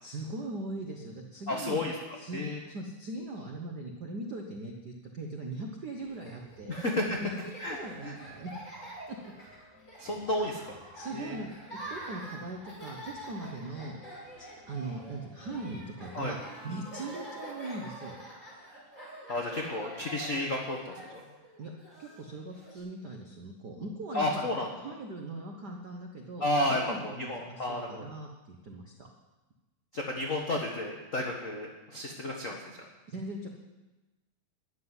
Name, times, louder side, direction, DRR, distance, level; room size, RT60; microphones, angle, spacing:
voice 1, 0.0-1.8 2.2-6.8 7.2-7.3 7.6-8.6 9.1-9.2 10.9-11.5 11.9-14.0 14.4-18.2 21.6-21.7 22.0-24.5 24.8-29.1 33.1-33.5, right 2 dB, 65° right, 1 dB, 1.0 m, -40 dB
voice 2, 1.5-1.9 2.3-2.6 6.7-7.0 7.6-7.8 8.0-8.2 10.0-10.7 11.1-11.4 16.1-16.3 19.3-21.2 24.1-24.7 26.4-28.1 29.9-32.6, left 1 dB, 50° left, 0 dB, 0.9 m, -32 dB
Laughter, 6.0-22.8, right 1 dB, 20° left, 5.8 m, -46 dB
12.0 x 7.6 x 9.7 m, 1.1 s
omnidirectional pair, 3.5 m